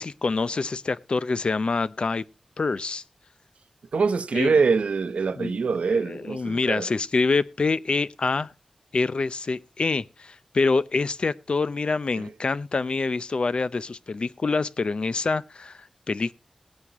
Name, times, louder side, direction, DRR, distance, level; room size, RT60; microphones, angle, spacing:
voice 1, 0.0-2.2 2.6-3.0 4.3-4.5 5.4-5.5 6.1-8.5 8.9-16.3, left 3 dB, 55° left, 0.6 m, -26 dB
voice 2, 3.9-6.9 12.2-12.3, right 5 dB, 75° right, 0.8 m, -24 dB
18.5 x 9.6 x 3.0 m
wide cardioid pair, 85°, 2 cm